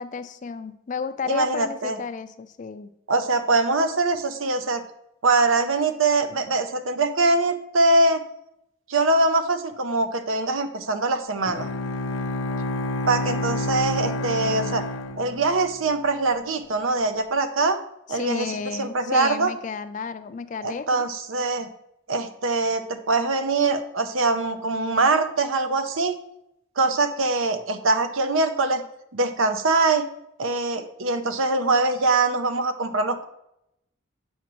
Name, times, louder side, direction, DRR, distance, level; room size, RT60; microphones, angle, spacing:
voice 1, 0.0-2.9 18.1-21.0, left 5 dB, 40° left, 12 dB, 0.3 m, -32 dB
voice 2, 1.3-2.0 3.1-4.8 5.2-8.2 8.9-11.7 13.1-14.8 15.2-17.8 18.1-18.5 18.8-19.5 20.6-21.7 22.1-26.2 26.8-28.8 29.1-30.0 30.4-33.2, right 3 dB, 80° right, 9 dB, 0.7 m, -23 dB
Bowed string instrument, 11.4-15.9, left 2 dB, 85° left, 0.6 m, -29 dB
8.1 x 5.1 x 3.0 m, 0.79 s
head